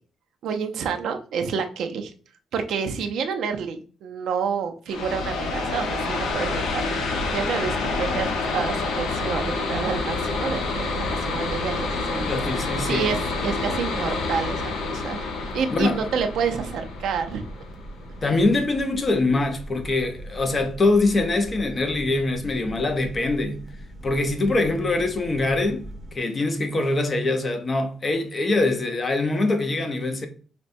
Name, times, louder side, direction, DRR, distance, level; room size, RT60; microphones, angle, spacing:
voice 1, 0.4-2.1 2.5-12.3 12.6-17.4, right 6 dB, 70° right, 0.5 m, -29 dB
sound 1, 4.9-18.3, left 3 dB, 90° left, 0.7 m, -28 dB
sound 2, 6.3-26.2, right 1 dB, 15° right, 0.8 m, -40 dB
voice 2, 12.2-13.1 15.7-16.0 18.2-23.6 24.0-30.3, left 2 dB, 25° left, 0.5 m, -23 dB
5.1 x 2.2 x 2.6 m
cardioid pair, 155°, 0 cm